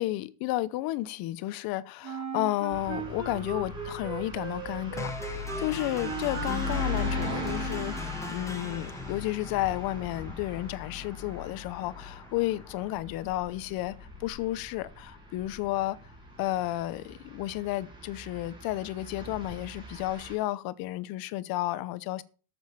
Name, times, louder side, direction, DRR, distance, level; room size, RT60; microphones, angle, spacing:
voice 1, 0.0-8.0 8.3-16.0 16.4-22.2, left 16 dB, 55° left, 0.8 m, -32 dB
Wind instrument woodwind instrument, 2.0-8.1, right 6 dB, 40° right, 4.1 m, -37 dB
sound 1, 2.7-20.3, left 3 dB, 10° right, 5.2 m, -40 dB
sound 2, 5.0-13.0, left 2 dB, 5° left, 1.6 m, -42 dB
13.0 x 7.2 x 5.7 m
cardioid pair, 165°, 44 cm